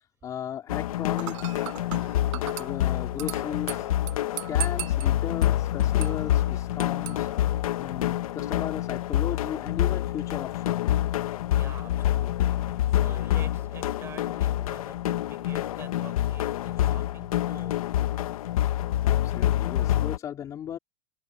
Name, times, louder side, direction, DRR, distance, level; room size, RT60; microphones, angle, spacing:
voice 1, 0.2-1.7 2.3-3.9 4.3-7.3 7.8-11.0 19.0-20.8, left 9 dB, 20° left, 3.3 m, -36 dB
sound 1, 0.7-20.2, left 13 dB, 75° left, 1.2 m, -27 dB
Dishes pots and pans / Glass, 1.2-8.2, right 15 dB, 60° right, 7.2 m, -40 dB
voice 2, 11.5-17.8, right 7 dB, 15° right, 5.6 m, -48 dB
supercardioid pair, 175°, 18 cm